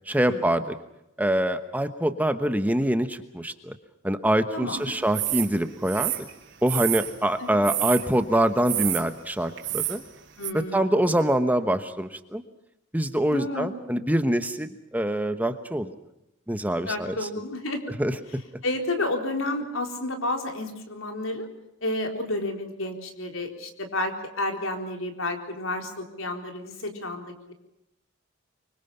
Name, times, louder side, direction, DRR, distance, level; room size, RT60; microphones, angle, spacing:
voice 1, 0.1-0.8 1.2-3.7 4.0-6.2 6.6-10.0 10.5-12.4 12.9-15.9 16.5-17.3 18.0-18.2, right 1 dB, 10° right, 9 dB, 1.1 m, -25 dB
voice 2, 4.5-4.9 7.4-7.6 10.4-10.9 13.3-13.7 16.9-17.9 18.6-21.5 21.8-27.5, left 1 dB, 75° left, 4 dB, 4.1 m, -31 dB
sound 1, 5.1-5.5 5.9-7.1 7.6-8.1 8.6-9.0 9.6-10.0 10.4-10.5, right 14 dB, 60° right, 3.2 m, -28 dB
25.0 x 24.5 x 5.7 m, 0.89 s
head